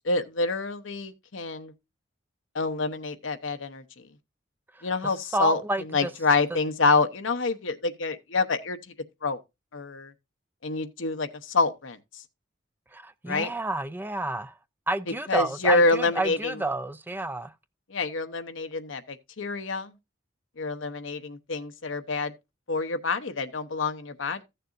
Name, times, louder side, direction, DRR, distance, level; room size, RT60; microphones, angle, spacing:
voice 1, 0.0-1.7 2.5-3.8 4.8-8.8 9.2-9.4 9.7-10.1 10.6-12.2 13.3-13.5 15.3-16.6 17.9-19.9 20.6-22.3 22.7-24.4, left 3 dB, 80° left, 0.9 m, -27 dB
voice 2, 5.3-6.1 12.9-14.5 14.9-17.5, right 2 dB, 10° right, 0.4 m, -30 dB
15.0 x 6.7 x 2.5 m
head